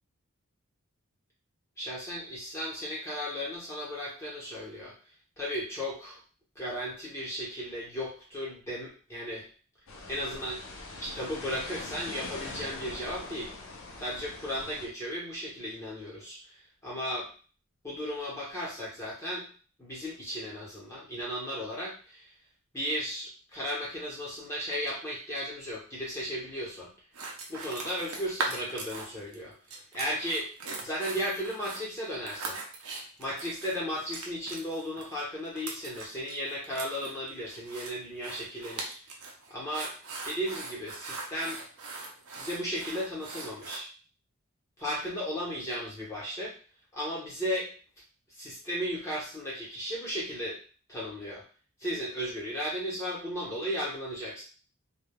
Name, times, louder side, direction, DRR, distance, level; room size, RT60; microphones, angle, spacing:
voice 1, 1.8-4.9 5.4-6.2 6.5-9.5 10.1-10.6 11.0-13.5 14.0-16.6 16.8-17.3 17.8-19.5 19.8-22.3 22.7-26.9 27.5-29.5 29.9-30.5 30.8-32.6 33.2-38.9 39.5-40.0 40.2-41.6 42.4-43.9 44.8-46.5 46.9-47.7 48.4-50.6 50.9-51.4 51.8-54.4, equal, 15° left, -6 dB, 0.9 m, -35 dB
sound 1, 9.9-14.9, left 2 dB, 65° left, 0.6 m, -42 dB
sound 2, 27.1-29.3 29.7-43.8, right 3 dB, 75° right, 0.6 m, -40 dB
3.3 x 2.3 x 2.2 m, 0.38 s
head